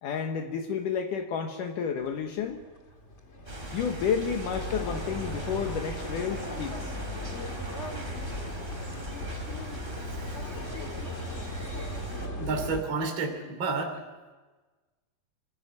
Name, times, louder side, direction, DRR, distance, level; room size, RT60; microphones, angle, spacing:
voice 1, 0.0-2.6 3.7-6.9 11.3-11.9, left 7 dB, 70° left, 4 dB, 2.7 m, -31 dB
sound 1, 2.0-12.8, left 2 dB, 30° left, 1.3 m, -38 dB
sound 2, 3.5-12.3, right 1 dB, 15° right, 3.4 m, -39 dB
voice 2, 10.1-10.4 12.4-14.0, right 4 dB, 35° right, 2 dB, 3.5 m, -31 dB
26.5 x 15.0 x 9.4 m, 1.3 s
omnidirectional pair, 4.1 m